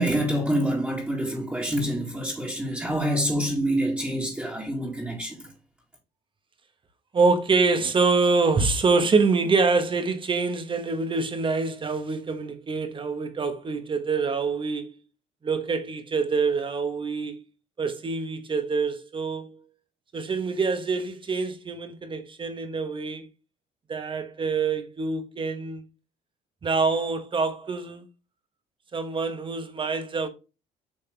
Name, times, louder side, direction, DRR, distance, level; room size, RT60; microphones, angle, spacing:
voice 1, 0.0-5.5, right 1 dB, 10° right, 2.1 m, -26 dB
voice 2, 7.1-14.9 15.4-17.4 17.8-19.6 20.1-23.3 23.9-25.8 26.6-28.0 28.9-30.3, right 4 dB, 30° right, 1.3 m, -25 dB
7.6 x 4.1 x 3.3 m
cardioid pair, 110°, 17 cm